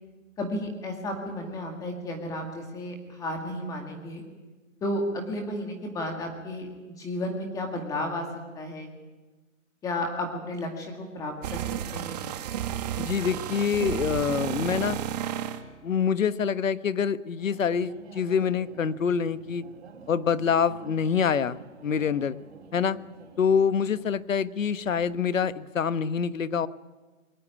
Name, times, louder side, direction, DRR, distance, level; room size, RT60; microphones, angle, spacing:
voice 1, 0.4-4.2 4.8-6.7 7.0-8.3 8.5-8.9 9.8-11.6 11.9-12.3, left 1 dB, 10° left, 3 dB, 2.0 m, -33 dB
sound 1, 11.4-15.6, right 10 dB, 30° right, 1.7 m, -32 dB
voice 2, 13.0-15.0 15.8-19.6 20.1-22.4 22.7-23.0 23.4-26.7, left 7 dB, 75° left, 14 dB, 1.3 m, -26 dB
sound 2, 17.4-24.1, right 4 dB, 50° right, 5.1 m, -49 dB
22.5 x 18.5 x 10.0 m, 1.3 s
hypercardioid pair, 160°, 40 cm